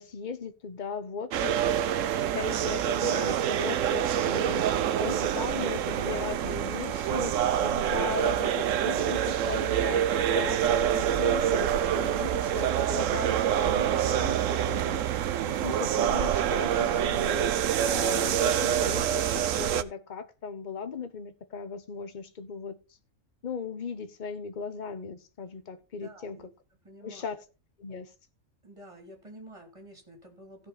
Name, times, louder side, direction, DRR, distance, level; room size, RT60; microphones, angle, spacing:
voice 1, 0.0-1.6 2.3-10.6 10.9-15.0 15.5-22.8 23.4-26.5 27.0-27.4 27.8-28.1, left 5 dB, 40° left, 1.2 m, -37 dB
sound 1, 1.3-19.8, right 10 dB, 80° right, 1.1 m, -26 dB
voice 2, 26.0-26.5 26.8-27.3 28.6-30.7, right 1 dB, 25° right, 3.0 m, -50 dB
16.5 x 5.6 x 4.2 m
omnidirectional pair, 1.4 m